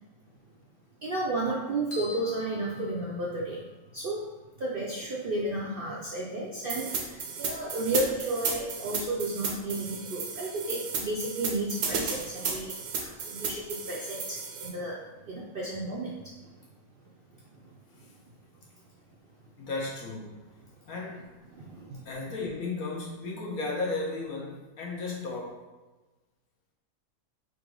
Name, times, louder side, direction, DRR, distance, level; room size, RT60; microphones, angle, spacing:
voice 1, 1.0-3.6 3.9-4.3 4.6-15.0 15.2-16.5 21.5-22.0, right 2 dB, 60° right, -4 dB, 0.6 m, -33 dB
sound 1, 1.9-3.7, left 2 dB, 45° left, 1.3 m, -45 dB
sound 2, 6.7-14.7, right 5 dB, 80° right, 1.2 m, -33 dB
voice 2, 19.6-20.5 20.8-21.3 22.0-25.6, left 3 dB, 70° left, -3 dB, 1.4 m, -34 dB
4.0 x 2.6 x 4.6 m, 1.2 s
omnidirectional pair, 1.6 m